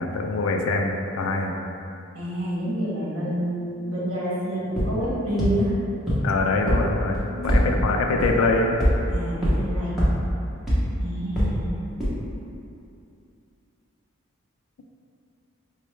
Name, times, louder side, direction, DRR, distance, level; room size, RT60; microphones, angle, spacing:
voice 1, 0.0-1.5 6.2-7.2 7.4-8.7, left 3 dB, 75° left, 2 dB, 0.3 m, -24 dB
voice 2, 2.1-5.7 7.3-7.7 9.1-10.0 11.0-11.7, equal, 80° right, -7 dB, 0.9 m, -28 dB
sound 1, 4.8-4.9 5.4-5.5 6.1-6.2 6.7-6.8 7.1-7.6 8.2-8.3 8.8-8.9 9.4-9.5 10.0-10.1 10.7-10.8 11.4-11.5 12.0-12.1, equal, ahead, 0.7 m, -20 dB
4.4 x 2.0 x 3.1 m, 2.6 s
head